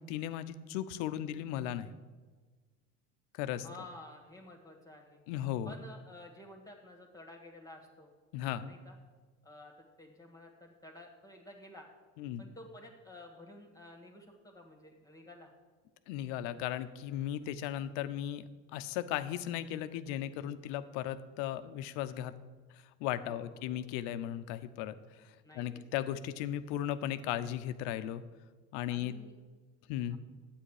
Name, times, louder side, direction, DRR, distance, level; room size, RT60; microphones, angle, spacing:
voice 1, 0.1-1.9 3.3-3.7 5.3-5.7 8.3-8.7 12.2-12.4 16.1-22.3 22.7-28.2 28.7-29.1 29.9-30.2, left 11 dB, 80° left, 12 dB, 0.7 m, -36 dB
voice 2, 3.6-5.2 5.6-8.1 8.6-8.9 9.4-11.9 12.4-15.5 23.2-23.8 25.4-26.1 28.9-29.4 30.1-30.2, left 1 dB, 10° left, 1 dB, 1.7 m, -52 dB
10.0 x 8.4 x 4.8 m, 1.4 s
supercardioid pair, 85°, 36 cm